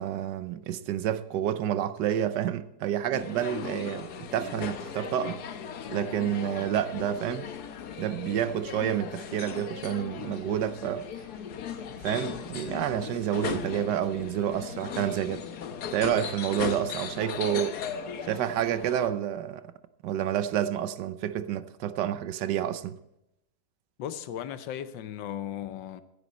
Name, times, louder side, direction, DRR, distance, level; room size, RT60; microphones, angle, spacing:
voice 1, 0.0-5.4 5.9-7.5 8.0-11.0 12.0-15.4 15.9-17.8 18.2-19.7 20.0-23.0, right 10 dB, 75° right, 1.2 m, -29 dB
Coffee shop, 3.1-19.1, left 7 dB, 65° left, 1.3 m, -37 dB
voice 2, 24.0-26.0, left 10 dB, 80° left, 1.5 m, -36 dB
15.5 x 10.0 x 4.1 m
omnidirectional pair, 2.0 m